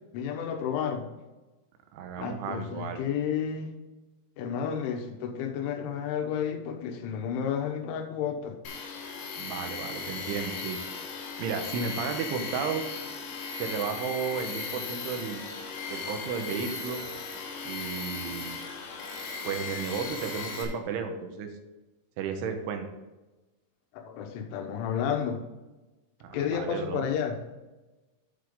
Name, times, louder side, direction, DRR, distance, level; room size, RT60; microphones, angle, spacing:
voice 1, 0.1-1.1 2.2-3.7 4.4-8.6 23.9-25.5 26.3-27.4, left 8 dB, 90° left, 4 dB, 3.6 m, -31 dB
voice 2, 1.9-3.0 9.4-10.8 11.4-12.9 13.6-15.5 15.9-17.0 17.7-18.6 19.5-21.5 22.2-22.9 26.2-27.1, right 6 dB, 90° right, 6 dB, 3.5 m, -33 dB
Tools, 8.6-20.6, left 5 dB, 65° left, 3.6 m, -37 dB
9.3 x 7.8 x 3.7 m, 1.1 s
omnidirectional pair, 5.4 m